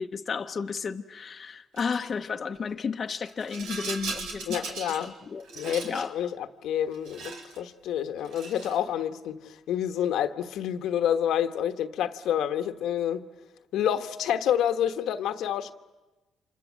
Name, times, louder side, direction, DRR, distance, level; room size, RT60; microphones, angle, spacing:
voice 1, 0.0-5.4 5.8-6.1, left 5 dB, 45° left, 0.9 m, -33 dB
Rattle, 1.8-2.1 3.2-5.1 5.4-6.1 6.9-7.6 8.2-8.8, right 4 dB, 85° right, 4.1 m, -38 dB
voice 2, 4.5-5.1 5.5-13.2 13.7-15.7, left 10 dB, 80° left, 1.2 m, -28 dB
29.5 x 26.5 x 7.5 m
cardioid pair, 90°, 0 cm